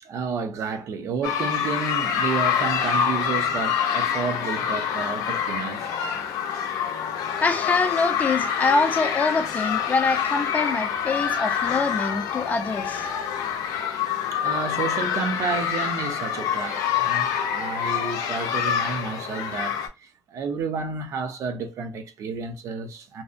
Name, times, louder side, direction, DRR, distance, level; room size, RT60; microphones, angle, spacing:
voice 1, 0.0-5.9 6.6-6.7 14.0-14.1 14.3-23.2, right 5 dB, 55° right, 0.5 m, -31 dB
sound 1, 1.2-19.9, left 8 dB, 80° left, 0.5 m, -26 dB
voice 2, 7.4-13.1, left 4 dB, 25° left, 0.4 m, -24 dB
2.6 x 2.0 x 2.4 m
cardioid pair, 140°, 6 cm